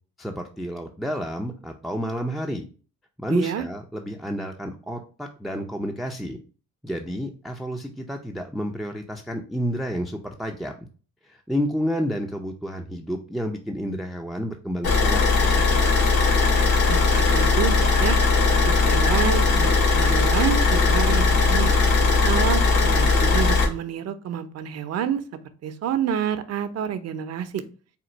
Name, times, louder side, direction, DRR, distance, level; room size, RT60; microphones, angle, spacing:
voice 1, 0.2-2.7 3.2-6.4 6.8-10.7 11.2-15.8, equal, ahead, 3 dB, 0.4 m, -30 dB
voice 2, 3.3-3.6 16.9-18.2 18.6-21.8 22.2-25.2 25.6-27.6, right 8 dB, 55° right, 10 dB, 0.6 m, -28 dB
Car / Idling, 14.8-23.6, left 4 dB, 75° left, 2.2 m, -19 dB
4.3 x 2.3 x 3.9 m, 0.37 s
cardioid pair, 90°, 30 cm